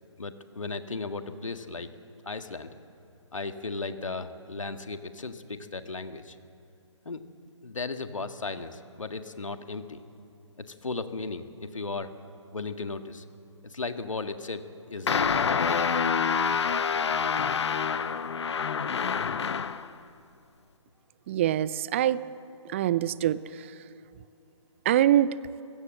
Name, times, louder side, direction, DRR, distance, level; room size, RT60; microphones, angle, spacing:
voice 1, 0.2-1.9 2.2-2.7 3.3-6.4 7.1-7.2 7.6-10.0 10.6-12.1 12.5-13.2 13.6-14.6 14.9-15.9, left 3 dB, 80° left, 8 dB, 1.8 m, -36 dB
sound 1, 15.1-19.9, left 6 dB, 60° left, 1.0 m, -27 dB
voice 2, 21.3-22.2 22.7-23.7 24.9-25.4, right 12 dB, 25° right, 18 dB, 0.5 m, -24 dB
30.0 x 16.5 x 7.7 m, 2.7 s
figure-of-eight pair, 145°, 16 cm